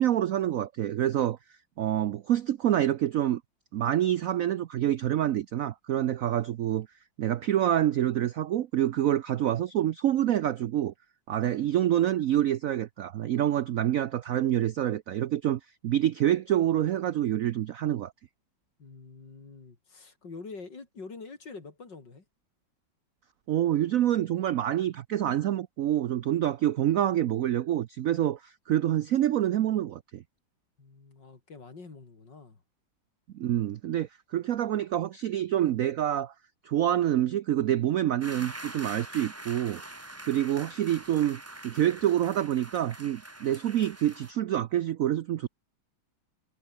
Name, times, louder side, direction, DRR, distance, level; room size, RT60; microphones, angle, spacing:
voice 1, 0.0-1.4 1.8-3.4 3.7-6.9 7.2-10.9 11.3-18.1 23.5-30.2 33.3-36.3 36.6-39.8 40.3-45.5, right 11 dB, 70° right, 0.8 m, -27 dB
voice 2, 18.8-22.2 30.8-32.6, left 4 dB, 65° left, 4.3 m, -46 dB
sound 1, 38.2-44.3, right 2 dB, 10° right, 0.9 m, -44 dB
omnidirectional pair, 2.1 m